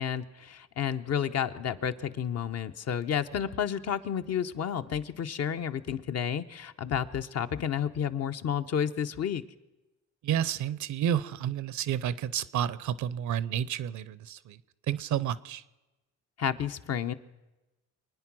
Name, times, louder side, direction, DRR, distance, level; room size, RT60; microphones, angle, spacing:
voice 1, 0.0-9.4 16.4-17.1, left 8 dB, 55° left, 9 dB, 0.8 m, -31 dB
voice 2, 10.2-14.6 14.9-15.6, right 10 dB, 70° right, 18 dB, 0.7 m, -30 dB
25.0 x 9.5 x 6.1 m, 1.1 s
cardioid pair, 90°, 30 cm